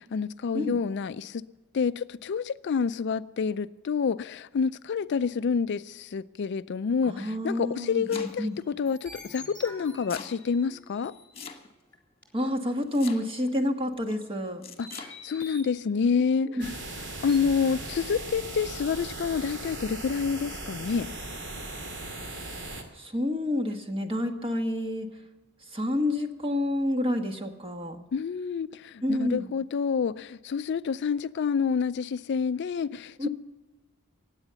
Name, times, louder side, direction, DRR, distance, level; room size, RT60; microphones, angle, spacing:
voice 1, 0.0-1.4 1.7-11.1 14.8-16.6 17.2-21.1 28.1-33.3, left 6 dB, 55° left, 0.4 m, -28 dB
voice 2, 7.0-8.6 12.3-14.6 16.4-16.6 22.9-25.1 25.7-28.0 29.0-29.5 33.2-33.3, left 1 dB, 25° right, 1.4 m, -29 dB
Domestic sounds home sounds, 7.6-8.6 9.6-10.4 11.3-12.0 12.9-13.5 14.6-15.1, left 5 dB, 30° left, 1.5 m, -42 dB
sound 1, 8.2-11.3 11.9-12.0 12.2-12.3 13.2-13.6 14.1-14.2 14.8-15.7 16.6-18.5 18.9-19.0 19.6-19.7 20.1-20.3 20.6-20.7, left 2 dB, 5° left, 3.7 m, -48 dB
sound 2, 16.6-22.8, right 2 dB, 60° right, 2.3 m, -38 dB
16.5 x 9.9 x 6.8 m
head